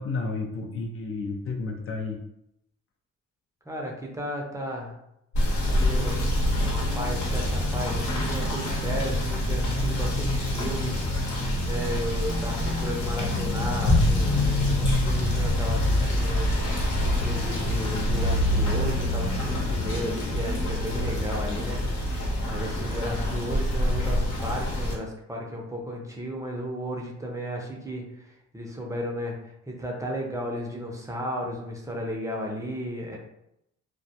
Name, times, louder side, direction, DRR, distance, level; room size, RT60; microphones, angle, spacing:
voice 1, 0.0-2.2, left 3 dB, 45° left, 3 dB, 0.4 m, -31 dB
voice 2, 3.7-4.9 5.6-21.8 22.5-33.2, equal, 10° right, -1 dB, 0.5 m, -34 dB
Rain / Motor vehicle (road), 5.3-24.9, left 1 dB, 75° left, 0.9 m, -26 dB
2.2 x 2.2 x 2.7 m, 0.80 s
cardioid pair, 90°, 30 cm